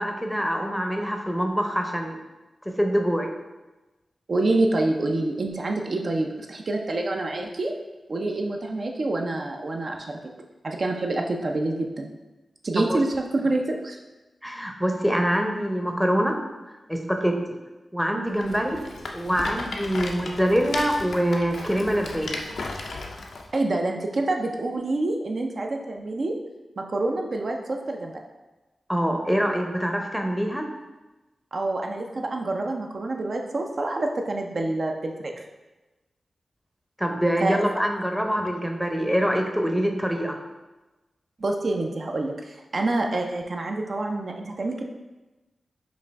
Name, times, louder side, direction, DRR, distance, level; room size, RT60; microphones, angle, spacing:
voice 1, 0.0-2.2 2.7-3.3 12.8-13.0 14.4-16.4 16.9-17.4 17.9-18.8 19.1-22.4 28.9-30.7 37.0-40.4, equal, ahead, 3 dB, 0.6 m, -24 dB
voice 2, 4.3-7.7 8.1-10.2 10.6-12.1 12.6-14.0 23.5-26.4 26.8-28.2 31.5-35.3 37.4-37.6 41.4-44.8, right 2 dB, 60° right, 2 dB, 0.4 m, -27 dB
Rattle, 18.4-23.5, left 3 dB, 80° left, 0.4 m, -35 dB
5.1 x 2.5 x 3.4 m, 1.1 s
cardioid pair, 55°, 0 cm